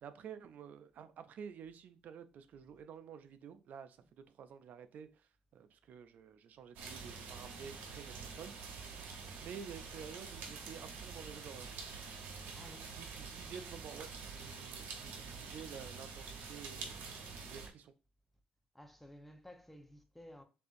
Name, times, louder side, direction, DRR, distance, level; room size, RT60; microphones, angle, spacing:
voice 1, 0.0-4.0 4.3-8.8 9.4-11.7 13.0-14.1 14.3-17.0 17.5-17.9, right 7 dB, 65° right, 0.4 m, -51 dB
sound 1, 6.7-17.7, right 5 dB, 85° right, 0.9 m, -47 dB
voice 2, 12.5-12.9 18.7-20.4, equal, 5° left, 0.8 m, -54 dB
6.6 x 2.5 x 2.6 m
cardioid pair, 85°, 3 cm